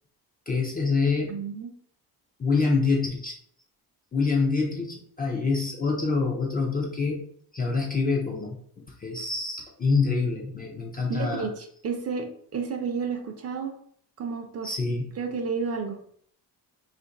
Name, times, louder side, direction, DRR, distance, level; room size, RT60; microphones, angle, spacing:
voice 1, 0.5-1.4 2.4-3.4 4.1-7.2 7.5-8.6 9.0-11.5 14.6-15.1, left 4 dB, 25° left, -1 dB, 0.3 m, -26 dB
voice 2, 1.3-1.7 11.1-12.3 12.5-13.7 14.2-14.7 15.2-16.0, right 5 dB, 40° right, 4 dB, 0.5 m, -31 dB
2.5 x 2.5 x 3.8 m, 0.62 s
cardioid pair, 155°, 41 cm